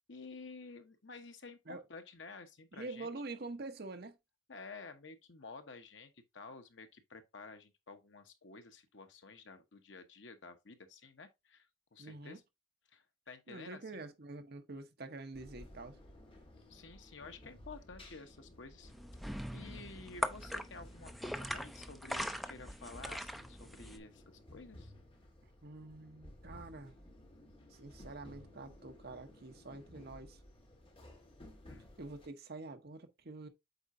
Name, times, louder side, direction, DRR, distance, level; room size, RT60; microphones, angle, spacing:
voice 1, 0.1-3.1 4.5-12.4 12.9-14.0 16.7-18.9 19.5-24.9 31.7-31.9, left 4 dB, 70° left, 1.1 m, -52 dB
voice 2, 2.7-4.1 12.0-12.4 13.5-16.0 25.6-26.9 27.8-30.4 32.0-33.5, right 3 dB, 55° right, 1.0 m, -46 dB
sound 1, 15.3-32.3, left 1 dB, 30° left, 1.7 m, -56 dB
sound 2, 18.9-24.0, equal, ahead, 0.5 m, -41 dB
8.0 x 4.6 x 2.6 m
head